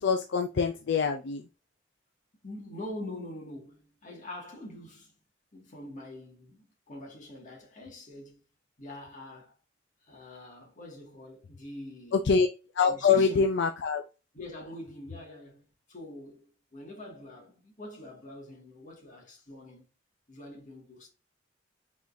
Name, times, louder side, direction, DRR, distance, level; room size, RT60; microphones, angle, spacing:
voice 1, 0.0-1.5 12.1-12.5 12.7-14.0, left 5 dB, 65° left, 0.4 m, -25 dB
voice 2, 2.4-5.2 5.5-8.5 8.8-9.6 10.0-12.3 12.9-13.5 14.3-19.9 20.3-21.1, left 1 dB, 45° left, 1.8 m, -44 dB
4.7 x 3.9 x 2.6 m
head